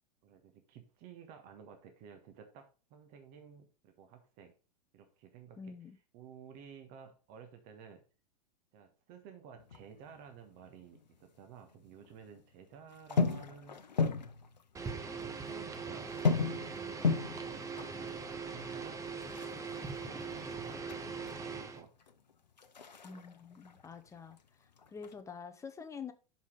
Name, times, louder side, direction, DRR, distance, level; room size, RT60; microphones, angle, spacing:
voice 1, 0.2-4.5 4.9-5.8 6.1-8.0 8.7-13.8 14.9-16.6 17.0-17.2 18.0-19.1 19.5-19.6 20.0-21.9, right 7 dB, 45° right, 1.3 m, -54 dB
voice 2, 5.6-6.0 23.0-24.4 24.9-26.1, left 6 dB, 15° left, 0.8 m, -46 dB
sound 1, 9.6-11.2 11.5-12.4 12.9-14.9 15.2-15.3 15.5-21.4 21.8-24.4 24.7-25.2, left 5 dB, 85° left, 0.7 m, -36 dB
sound 2, 14.7-21.8, right 5 dB, 15° right, 0.8 m, -41 dB
5.5 x 5.1 x 5.0 m
figure-of-eight pair, 95°, 21 cm